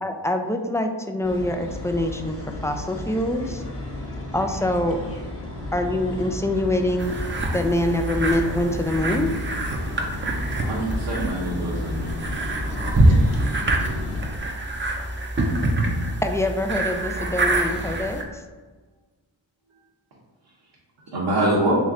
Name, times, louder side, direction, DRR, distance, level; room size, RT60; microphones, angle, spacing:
voice 1, 0.0-2.4 2.6-3.6 4.3-5.0 5.7-7.1 7.5-9.3 16.2-18.4, left 1 dB, 5° left, 5 dB, 0.3 m, -24 dB
sound 1, 1.2-14.3, left 2 dB, 30° left, 0.9 m, -33 dB
voice 2, 5.2-6.0 8.6-8.7 13.0-13.4 15.0-16.0 19.6-19.9 21.0-21.1 21.5-21.6, right 1 dB, 90° right, -3 dB, 1.1 m, -43 dB
sound 2, 7.0-18.2, right 1 dB, 25° right, 0.6 m, -25 dB
voice 3, 10.6-12.2 21.1-21.7, right 1 dB, 60° right, -7 dB, 1.1 m, -24 dB
3.2 x 3.0 x 3.7 m, 1.3 s
cardioid pair, 50°, 46 cm